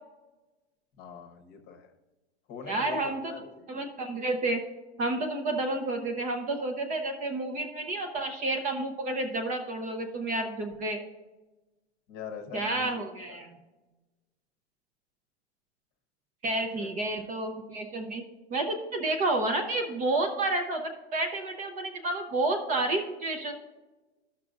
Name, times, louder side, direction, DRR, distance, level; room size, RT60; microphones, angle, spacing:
voice 1, 1.0-1.9 2.5-3.7 12.1-12.9 13.3-13.4 16.7-16.9 17.2-17.3, left 6 dB, 30° left, 4 dB, 1.0 m, -43 dB
voice 2, 2.7-3.3 3.7-4.6 5.0-11.0 12.5-13.6 16.4-18.2 18.5-23.5, right 2 dB, 25° right, 4 dB, 0.6 m, -30 dB
13.0 x 6.0 x 2.5 m, 1.2 s
supercardioid pair, 145°, 33 cm